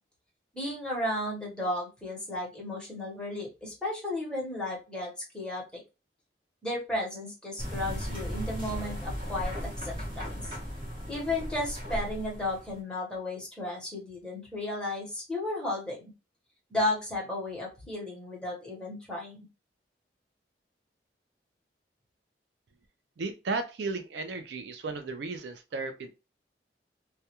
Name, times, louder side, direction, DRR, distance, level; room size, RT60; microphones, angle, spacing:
voice 1, 0.5-5.6 6.6-10.3 11.1-16.1 16.7-19.4, left 1 dB, 5° left, -3 dB, 0.9 m, -34 dB
sound 1, 7.6-12.8, equal, 30° right, 1.0 m, -36 dB
voice 2, 23.2-26.1, right 3 dB, 65° right, 7 dB, 0.4 m, -34 dB
2.2 x 2.2 x 2.8 m, 0.28 s
head